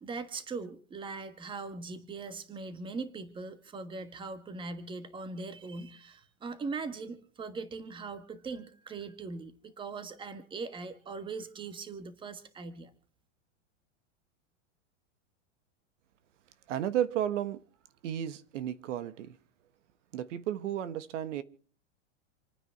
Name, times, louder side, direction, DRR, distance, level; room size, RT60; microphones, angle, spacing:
voice 1, 0.0-12.9, right 4 dB, 15° right, 1.4 m, -40 dB
voice 2, 16.7-17.6 18.0-19.4 20.1-21.4, right 10 dB, 75° right, 1.4 m, -33 dB
28.0 x 9.6 x 4.6 m
supercardioid pair, 150°, 37 cm